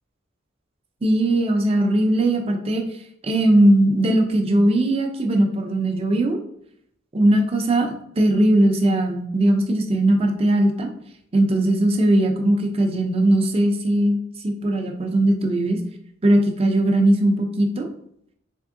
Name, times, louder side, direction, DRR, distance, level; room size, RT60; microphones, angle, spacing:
voice 1, 1.0-2.8 3.2-6.4 7.1-10.9 11.3-14.2 14.4-15.8 16.2-17.9, right 1 dB, 30° right, 4 dB, 0.5 m, -19 dB
3.5 x 3.4 x 2.5 m, 0.71 s
head